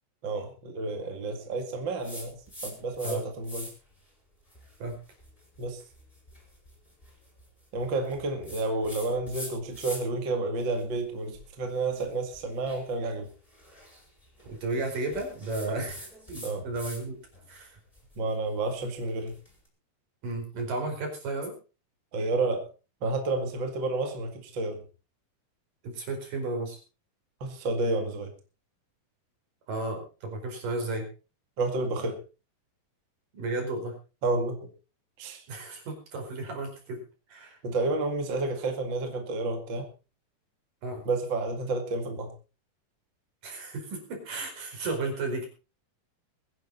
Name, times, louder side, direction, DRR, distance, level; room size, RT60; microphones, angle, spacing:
voice 1, 0.2-2.3 2.6-3.7 5.6-5.8 7.7-13.3 15.7-15.8 16.4-16.7 18.2-19.3 22.1-22.7 23.0-24.8 27.4-28.3 31.6-32.2 34.2-34.6 35.2-35.4 37.6-39.9 41.1-42.3, right 2 dB, 40° right, 5 dB, 2.4 m, -30 dB
sound 1, 2.0-3.2 3.4-3.9 4.5-10.2 10.6-17.0 17.3-19.5, equal, 10° left, 5.9 m, -45 dB
voice 2, 14.4-17.2 17.5-17.8 20.2-21.5 25.8-26.8 29.7-31.1 33.3-33.9 35.5-37.0 37.3-37.6 40.8-41.0 43.4-45.5, right 2 dB, 70° right, 3 dB, 6.4 m, -33 dB
22.5 x 10.5 x 4.1 m, 0.33 s
omnidirectional pair, 4.0 m